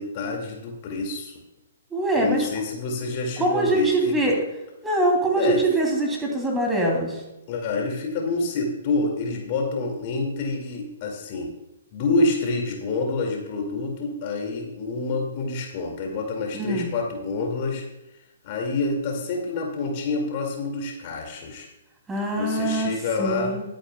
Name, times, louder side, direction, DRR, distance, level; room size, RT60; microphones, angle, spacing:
voice 1, 0.0-1.4 2.2-4.4 5.4-5.7 7.5-11.5 11.9-17.8 18.4-21.7 22.4-23.5, left 3 dB, 35° left, 1 dB, 2.1 m, -27 dB
voice 2, 1.9-2.4 3.4-4.3 4.8-7.2 16.5-16.9 22.1-22.9 23.2-23.6, right 1 dB, 10° right, 0 dB, 2.8 m, -23 dB
20.5 x 8.9 x 2.3 m, 0.96 s
figure-of-eight pair, 120°, 0 cm